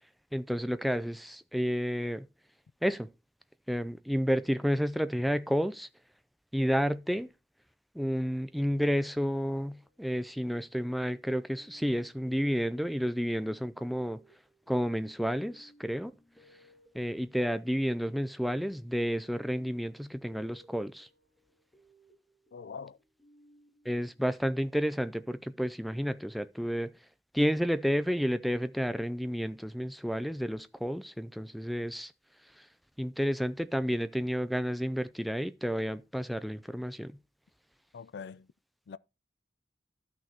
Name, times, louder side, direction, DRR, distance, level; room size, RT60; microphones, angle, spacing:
voice 1, 0.3-2.3 2.8-3.1 3.7-5.9 6.5-7.3 7.9-14.2 14.7-16.1 16.9-21.1 23.9-26.9 27.3-32.1 32.6-32.7 33.0-37.2, equal, ahead, 0.3 m, -31 dB
sound 1, 8.6-24.9, equal, 20° left, 3.2 m, -64 dB
voice 2, 22.5-23.0 37.9-38.5 38.9-39.0, left 6 dB, 80° left, 0.4 m, -43 dB
13.0 x 6.0 x 2.8 m
head